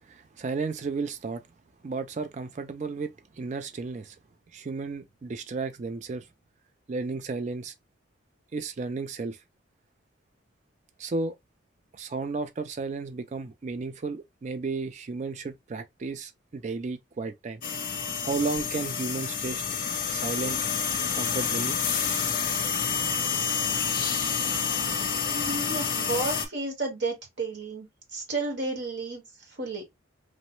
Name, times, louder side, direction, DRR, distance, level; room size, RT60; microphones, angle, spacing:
voice 1, 0.1-1.4 1.8-4.2 4.5-6.2 6.9-7.7 8.5-9.4 11.0-11.3 11.9-17.6 18.2-19.6 20.1-20.6 21.1-21.8, right 4 dB, 35° right, 0.3 m, -33 dB
sound 1, 17.6-26.5, left 6 dB, 40° left, 0.5 m, -28 dB
voice 2, 25.3-27.9 28.1-29.2 29.6-29.8, right 3 dB, 60° right, 1.3 m, -32 dB
3.0 x 2.1 x 2.9 m
head